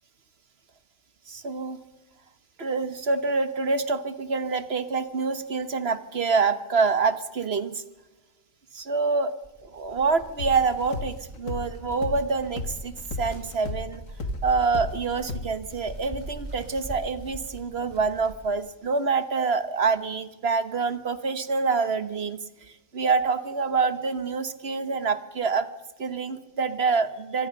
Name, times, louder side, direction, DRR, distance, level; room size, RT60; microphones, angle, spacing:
voice 1, 1.3-1.8 2.6-7.8 8.7-9.3 9.6-14.0 14.4-22.4 22.9-25.7 26.0-27.5, right 4 dB, 50° right, 12 dB, 1.4 m, -26 dB
sound 1, 9.4-18.7, right 1 dB, 30° right, 4.6 m, -41 dB
sound 2, 10.4-15.0 15.3-15.5, left 3 dB, 80° left, 1.9 m, -34 dB
25.0 x 17.0 x 6.6 m, 1.1 s
omnidirectional pair, 1.4 m